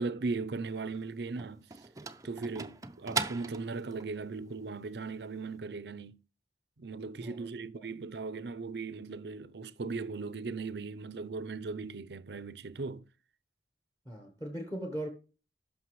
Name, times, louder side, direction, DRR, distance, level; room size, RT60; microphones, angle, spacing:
voice 1, 0.0-1.7 2.2-6.2 6.8-13.1, right 4 dB, 70° right, 0.6 m, -38 dB
sound 1, 0.6-4.1, right 4 dB, 20° right, 0.5 m, -39 dB
voice 2, 14.0-15.1, right 1 dB, 15° left, 1.2 m, -39 dB
11.5 x 5.8 x 3.1 m
head